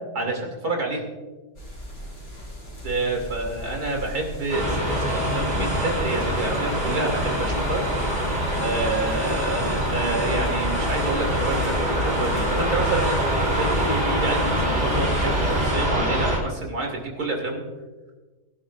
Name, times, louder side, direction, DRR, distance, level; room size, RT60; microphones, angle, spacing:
voice 1, 0.1-1.0 2.8-17.6, right 2 dB, 85° right, 1 dB, 3.2 m, -28 dB
sound 1, 1.6-15.7, equal, 70° left, 5.4 m, -39 dB
sound 2, 4.5-16.4, equal, 45° right, 3.8 m, -24 dB
23.5 x 11.5 x 2.5 m, 1.3 s
omnidirectional pair, 1.6 m